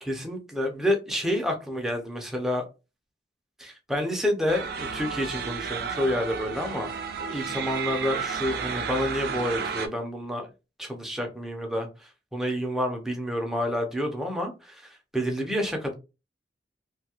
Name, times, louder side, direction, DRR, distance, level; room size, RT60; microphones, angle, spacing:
voice 1, 0.0-2.7 3.6-6.9 7.3-10.5 10.8-15.9, equal, ahead, 0.5 m, -29 dB
sound 1, 4.5-9.9, right 6 dB, 60° right, 0.4 m, -32 dB
2.7 x 2.3 x 2.9 m
head